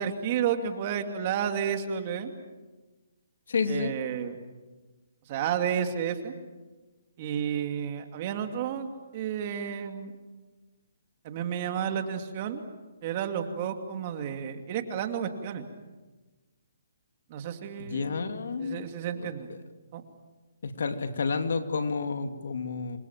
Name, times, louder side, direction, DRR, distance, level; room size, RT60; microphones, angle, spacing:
voice 1, 0.0-2.3 3.7-4.4 5.3-6.3 7.2-10.1 11.2-12.6 13.0-15.7 17.3-18.1 18.6-19.5 19.9-20.0, right 8 dB, 35° right, 6 dB, 2.6 m, -31 dB
voice 2, 3.5-3.9 17.8-18.8 20.6-23.0, left 4 dB, 70° left, 7 dB, 2.6 m, -30 dB
27.5 x 24.0 x 7.5 m, 1.2 s
hypercardioid pair, 155°, 0 cm